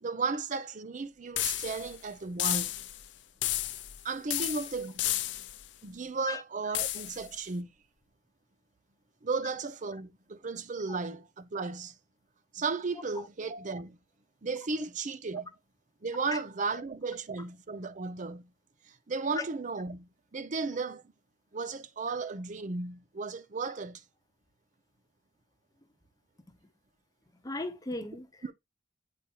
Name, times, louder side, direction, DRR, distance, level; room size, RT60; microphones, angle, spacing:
voice 1, 0.0-2.7 4.0-5.0 5.8-7.7 9.2-11.9 12.5-14.0 14.4-15.5 16.0-18.5 18.9-21.0 21.5-24.0 28.4-28.5, right 4 dB, 40° right, 0.6 m, -35 dB
sound 1, 1.4-2.0 2.4-3.0 3.4-4.0 4.3-5.6 6.7-7.3, left 14 dB, 70° left, 0.6 m, -32 dB
voice 2, 27.4-28.5, left 3 dB, 20° left, 0.8 m, -36 dB
8.4 x 4.7 x 2.8 m
head